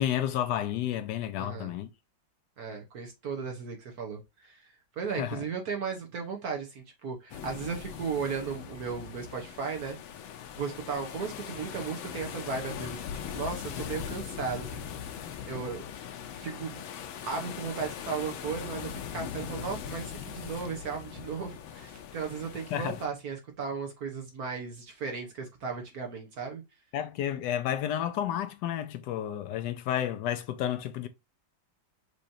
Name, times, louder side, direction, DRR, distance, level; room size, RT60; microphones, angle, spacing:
voice 1, 0.0-1.9 5.2-5.4 22.7-22.9 26.9-31.1, left 11 dB, 75° left, 1.1 m, -31 dB
voice 2, 1.4-1.7 2.6-4.7 5.0-10.0 10.5-13.0 13.3-15.8 16.3-16.8 17.2-26.6, right 5 dB, 55° right, 1.4 m, -36 dB
sound 1, 7.3-23.1, left 9 dB, 90° left, 1.5 m, -40 dB
6.3 x 3.1 x 2.6 m
omnidirectional pair, 2.1 m